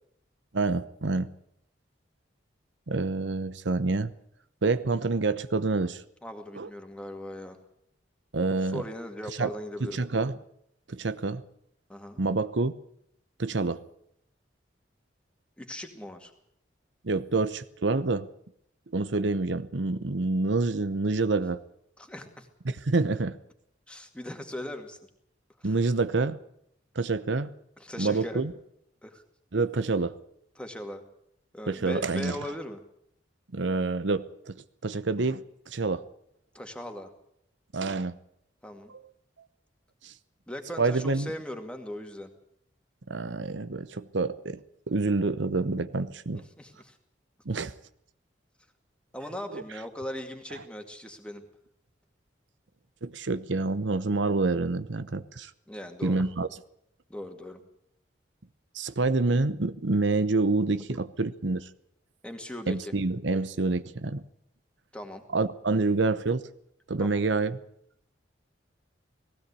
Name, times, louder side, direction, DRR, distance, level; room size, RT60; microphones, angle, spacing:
voice 1, 0.5-1.3 2.9-4.1 4.6-6.0 6.5-6.7 8.3-8.8 9.4-9.5 9.8-10.3 10.9-11.4 12.2-12.7 13.4-13.8 17.0-18.3 18.9-21.6 22.6-23.4 25.6-26.4 26.9-27.5 28.0-28.5 29.5-30.1 31.7-32.4 33.5-34.6 34.8-36.0 37.7-38.2 40.0-40.1 40.8-41.3 43.1-46.4 47.5-47.7 49.5-49.6 53.0-55.5 56.0-56.5 58.7-61.7 62.7-64.2 65.3-66.4 66.9-67.6, right 3 dB, 80° right, 12 dB, 0.9 m, -27 dB
voice 2, 6.2-7.6 8.6-10.0 11.9-12.2 15.6-16.3 22.0-22.5 23.9-25.0 25.6-25.7 27.8-28.4 29.0-29.2 30.6-31.0 31.5-32.8 36.5-37.1 38.6-38.9 40.5-42.3 46.6-47.0 49.1-51.4 55.7-56.3 57.1-57.6 62.2-62.9 64.9-65.2 67.0-67.2, left 1 dB, 5° left, 5 dB, 2.2 m, -39 dB
19.0 x 16.5 x 8.3 m, 0.73 s
head